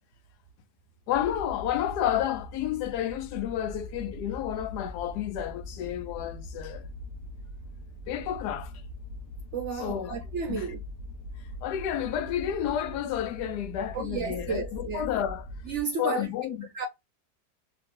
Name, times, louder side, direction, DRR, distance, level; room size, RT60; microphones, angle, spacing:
voice 1, 1.1-6.9 8.1-8.7 9.7-10.2 10.5-10.7 11.6-15.5 16.0-16.7, left 10 dB, 80° left, 1.1 m, -31 dB
sound 1, 1.1-15.8, left 1 dB, 65° left, 0.7 m, -42 dB
voice 2, 9.5-10.8 13.9-15.0 15.7-16.3 16.7-16.9, right 5 dB, 70° right, 0.7 m, -32 dB
2.9 x 2.8 x 3.5 m
omnidirectional pair, 1.7 m